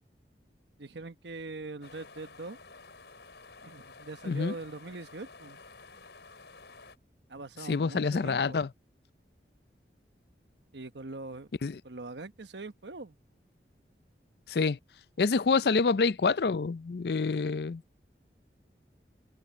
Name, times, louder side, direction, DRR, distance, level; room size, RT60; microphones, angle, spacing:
voice 1, 0.8-2.6 3.6-5.6 7.3-8.6 10.7-11.5 11.8-13.1, right 3 dB, 85° right, 1.2 m, -42 dB
sound 1, 1.8-7.0, left 4 dB, 85° left, 5.1 m, -52 dB
voice 2, 7.7-8.7 11.6-11.8 14.5-14.8 15.2-17.8, left 4 dB, 65° left, 0.5 m, -27 dB
head